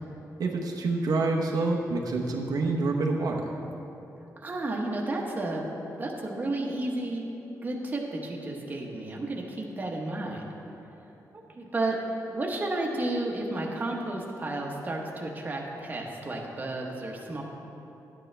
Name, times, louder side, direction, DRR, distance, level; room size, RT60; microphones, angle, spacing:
voice 1, 0.4-3.5, right 3 dB, 75° right, 0 dB, 0.9 m, -27 dB
voice 2, 4.4-5.7 5.9-7.2 7.6-10.5 11.3-12.0 12.3-17.4, right 2 dB, 25° right, -1 dB, 1.1 m, -32 dB
12.0 x 9.2 x 3.3 m, 3.0 s
wide cardioid pair, 150°, 7 cm